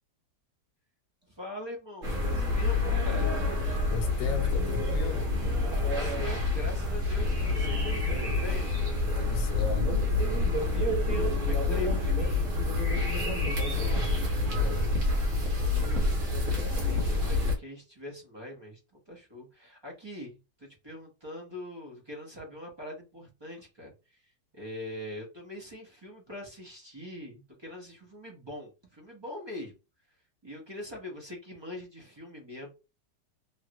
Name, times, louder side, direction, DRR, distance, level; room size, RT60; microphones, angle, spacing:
voice 1, 1.2-3.4 5.8-8.9 10.7-12.5 14.6-14.9 15.6-29.7 30.1-30.2 30.4-32.7, left 1 dB, 25° right, 0.6 m, -43 dB
sound 1, 2.0-17.5, left 2 dB, 55° right, 1.3 m, -27 dB
voice 2, 3.9-5.3 9.2-10.2 13.2-14.9, left 5 dB, 70° left, 0.9 m, -38 dB
3.1 x 2.4 x 2.9 m
omnidirectional pair, 1.8 m